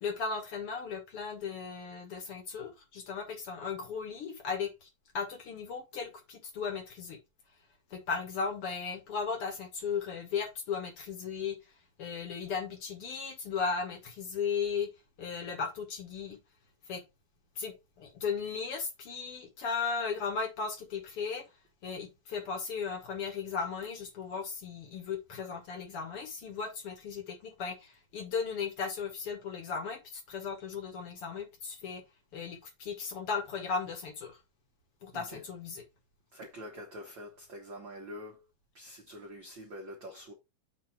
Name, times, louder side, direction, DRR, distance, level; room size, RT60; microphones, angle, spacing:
voice 1, 0.0-4.9 5.1-7.2 7.9-11.6 12.0-14.9 15.2-16.4 16.9-17.0 17.6-21.4 21.8-32.0 32.3-34.4 35.0-35.8, left 5 dB, 50° left, 1.9 m, -36 dB
voice 2, 35.1-35.5 36.3-38.4 38.7-40.3, equal, 55° right, 1.3 m, -45 dB
7.5 x 2.9 x 5.8 m
omnidirectional pair, 4.0 m